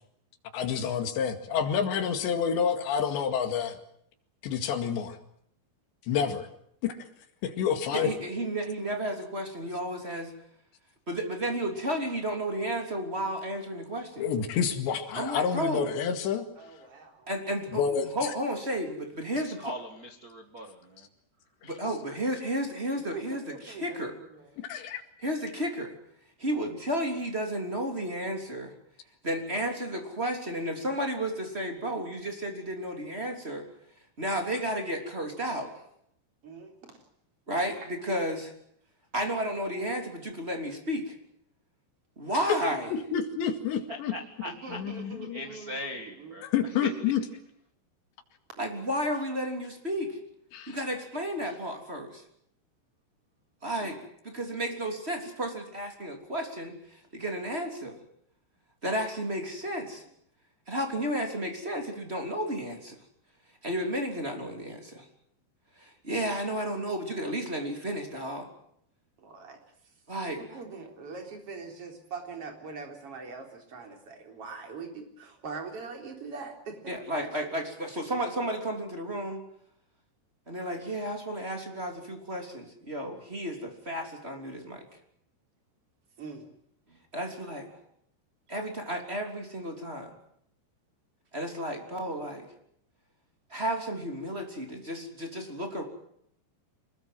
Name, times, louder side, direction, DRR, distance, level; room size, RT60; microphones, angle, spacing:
voice 1, 0.5-3.8 4.4-5.2 6.1-6.5 6.8-7.1 7.4-8.1 14.2-16.5 17.7-18.3 21.6-21.7 24.7-25.0 42.5-42.6 42.9-44.1 44.7-45.4 46.4-47.2 50.5-50.8, left 7 dB, 80° left, 7 dB, 4.3 m, -28 dB
voice 2, 7.9-10.3 11.1-14.3 15.1-15.9 17.3-19.7 21.6-24.1 25.2-25.9 26.4-28.7 29.2-33.6 34.2-35.8 37.5-38.5 39.1-41.1 42.2-42.9 48.6-50.2 50.7-52.2 53.6-54.0 54.2-58.0 58.8-60.0 60.7-62.9 63.6-65.0 65.8-68.5 70.1-70.6 76.9-79.4 80.5-84.9 87.1-87.7 88.5-90.1 91.3-92.5 93.5-95.8, equal, 15° right, 4 dB, 2.9 m, -32 dB
voice 3, 16.6-17.3 23.1-24.5 36.4-37.0 37.8-37.9 44.6-45.9 46.2-46.3 53.8-54.0 69.2-69.6 70.4-76.9 77.4-77.5 86.2-86.5, right 4 dB, 35° right, 4 dB, 4.3 m, -42 dB
voice 4, 19.3-21.1 22.1-22.3 43.9-46.9, left 1 dB, 80° right, 5 dB, 0.8 m, -41 dB
25.0 x 21.0 x 7.7 m, 0.71 s
omnidirectional pair, 5.0 m